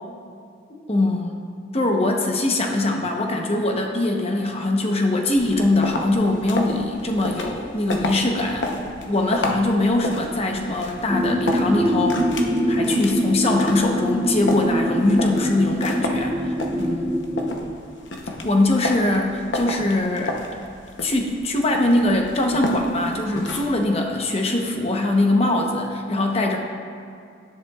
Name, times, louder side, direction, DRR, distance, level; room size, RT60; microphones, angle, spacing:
voice 1, 0.7-1.4 1.7-8.7 9.1-12.2 12.7-17.2 18.4-20.4 21.0-26.6, left 2 dB, 30° left, 2 dB, 0.9 m, -22 dB
sound 1, 5.3-23.8, left 2 dB, 70° left, 0.8 m, -31 dB
sound 2, 11.1-17.6, equal, 5° right, 2.1 m, -23 dB
11.0 x 10.0 x 2.4 m, 2.4 s
head